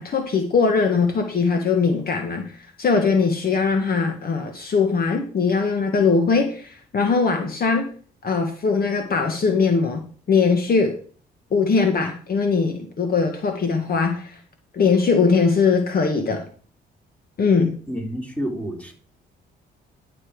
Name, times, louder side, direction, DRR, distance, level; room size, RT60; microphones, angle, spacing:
voice 1, 0.0-7.9 8.2-10.0 10.3-10.9 11.5-14.4 14.7-16.4 17.4-17.7, left 5 dB, 50° left, 4 dB, 1.6 m, -20 dB
voice 2, 17.9-18.9, equal, 5° left, 1 dB, 3.4 m, -29 dB
11.0 x 6.8 x 5.0 m, 0.43 s
cardioid pair, 90°, 20 cm